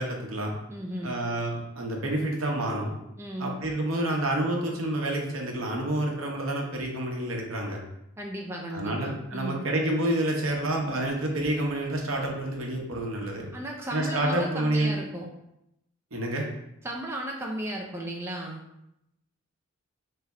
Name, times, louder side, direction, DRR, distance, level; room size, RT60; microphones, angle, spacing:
voice 1, 0.0-0.5 1.0-2.9 3.4-7.8 8.7-13.5 13.9-14.9 16.1-16.5, right 1 dB, 70° right, 0 dB, 0.9 m, -28 dB
voice 2, 0.7-1.2 3.2-3.6 8.2-9.6 13.5-15.3 16.8-18.6, right 1 dB, 10° right, 0 dB, 0.4 m, -35 dB
4.2 x 3.3 x 3.6 m, 0.82 s
head